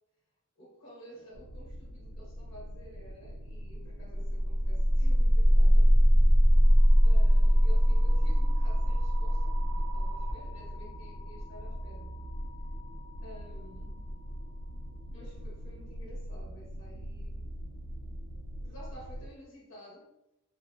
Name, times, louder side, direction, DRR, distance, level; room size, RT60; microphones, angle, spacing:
voice 1, 0.6-5.9 7.0-12.1 13.2-14.0 15.1-17.5 18.6-20.1, equal, 60° left, -4 dB, 1.3 m, -52 dB
sound 1, 1.3-19.3, equal, 90° right, 0.4 m, -42 dB
sound 2, 3.7-13.7, equal, 20° left, 0.7 m, -23 dB
2.9 x 2.0 x 2.8 m, 0.86 s
head